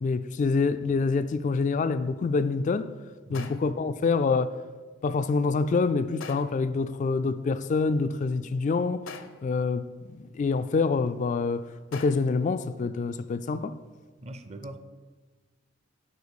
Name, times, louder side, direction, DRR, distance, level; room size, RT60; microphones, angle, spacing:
voice 1, 0.0-2.9 3.3-4.6 5.0-9.0 9.4-13.7, left 4 dB, 40° left, 0.3 m, -26 dB
sound 1, 3.3-3.9 6.2-6.7 9.1-9.6 11.9-12.4, left 5 dB, 80° left, 0.7 m, -43 dB
voice 2, 14.2-14.8, right 1 dB, 35° right, 0.5 m, -40 dB
9.4 x 4.3 x 7.0 m
head